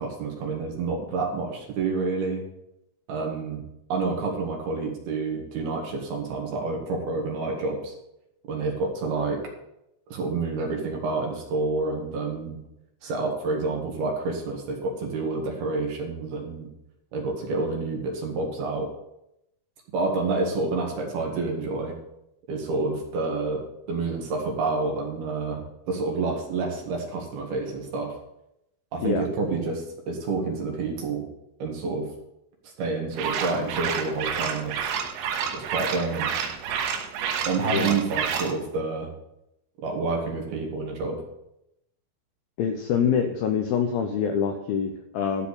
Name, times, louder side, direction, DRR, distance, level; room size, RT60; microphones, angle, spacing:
voice 1, 0.0-2.4 3.1-3.6 3.9-7.9 8.5-9.4 10.1-12.6 13.0-16.7 17.1-18.9 19.9-21.9 22.5-28.1 28.9-31.3 31.6-32.1 32.8-35.0 35.5-36.4 37.5-39.1 39.8-41.2, right 3 dB, 65° right, 1 dB, 3.5 m, -28 dB
sound 1, 33.1-38.5, right 7 dB, 90° right, 3.4 m, -29 dB
voice 2, 37.6-38.0 42.6-45.5, left 7 dB, 80° left, 5 dB, 2.1 m, -25 dB
12.5 x 4.6 x 8.4 m, 0.83 s
omnidirectional pair, 5.2 m